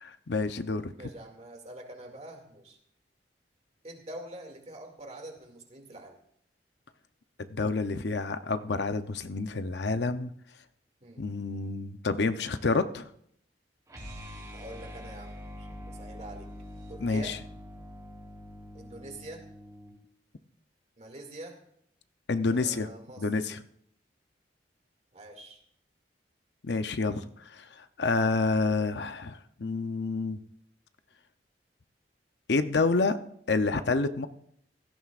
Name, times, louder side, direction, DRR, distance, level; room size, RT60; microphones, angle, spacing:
voice 1, 0.0-0.9 7.5-10.3 11.2-13.1 17.0-17.4 22.3-22.9 23.2-23.6 26.6-30.4 32.5-33.2 33.5-34.3, left 3 dB, 70° left, 10 dB, 0.7 m, -28 dB
voice 2, 1.0-2.8 3.8-6.2 11.0-11.2 14.5-16.5 16.9-17.4 18.7-19.5 21.0-21.6 22.5-23.3 25.1-25.6, right 1 dB, 40° right, 3 dB, 2.4 m, -45 dB
sound 1, 13.9-20.0, left 1 dB, 25° right, 3.7 m, -44 dB
16.5 x 14.5 x 2.5 m, 0.68 s
head